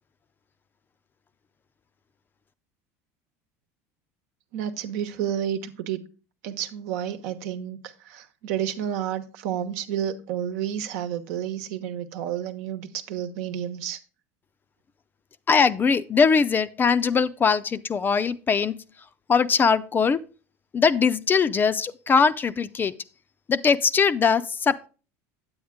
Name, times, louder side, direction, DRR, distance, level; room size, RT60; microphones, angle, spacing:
voice 1, 4.5-6.0 6.4-7.8 8.0-14.0, right 10 dB, 75° right, 1.0 m, -30 dB
voice 2, 15.5-18.7 19.3-20.2 20.7-22.9 23.5-24.9, left 5 dB, 25° left, 0.4 m, -21 dB
8.7 x 8.6 x 3.6 m
supercardioid pair, 115°, 8 cm